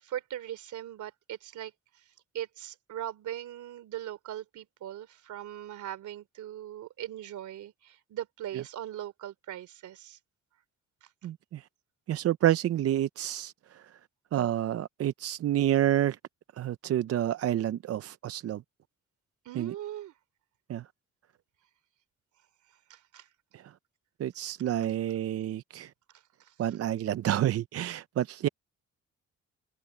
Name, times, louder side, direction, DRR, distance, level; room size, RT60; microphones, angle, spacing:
voice 1, 0.0-2.0 2.3-10.2 11.0-11.1 19.4-20.1 22.9-23.3 26.4-26.8, right 12 dB, 75° right, 2.9 m, -40 dB
voice 2, 11.2-11.6 12.1-13.8 14.3-16.2 16.6-18.6 19.6-19.7 20.7-20.8 23.5-23.6 24.2-25.9 26.6-28.5, right 12 dB, 55° right, 0.5 m, -29 dB
open air
cardioid pair, 90°, 30 cm